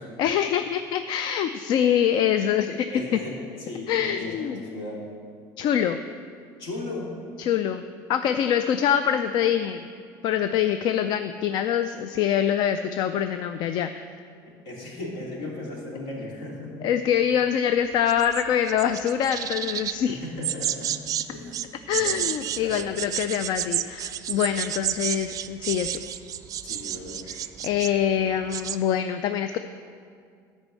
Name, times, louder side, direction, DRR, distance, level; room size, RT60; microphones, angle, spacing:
voice 1, 0.2-3.2 3.9-4.6 5.6-6.0 7.4-9.9 10.2-14.0 16.8-20.2 21.9-26.0 27.3-29.6, left 9 dB, 55° left, 10 dB, 0.4 m, -24 dB
voice 2, 2.9-3.4 3.7-5.1 6.6-7.1 14.6-16.7 20.1-20.9 21.3-21.6 21.9-22.2 22.6-23.0 26.6-27.2, left 2 dB, 70° left, -3 dB, 2.8 m, -36 dB
sound 1, 18.1-20.0 20.4-21.3 21.5-28.0 28.3-28.8, right 11 dB, 40° right, 0.4 m, -30 dB
9.7 x 5.3 x 7.5 m, 2.2 s
cardioid pair, 125°, 9 cm